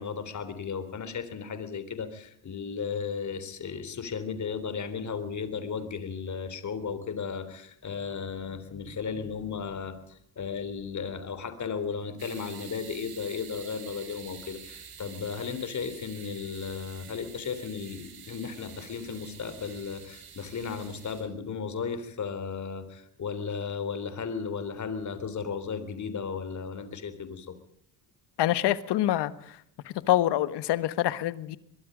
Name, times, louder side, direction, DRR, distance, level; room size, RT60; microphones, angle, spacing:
voice 1, 0.0-27.6, left 6 dB, 45° left, 3.6 m, -35 dB
sound 1, 12.2-21.2, right 7 dB, 65° right, 7.5 m, -48 dB
voice 2, 28.4-29.6 29.8-31.6, left 13 dB, 90° left, 1.5 m, -26 dB
23.5 x 22.0 x 5.1 m
cardioid pair, 115°, 40 cm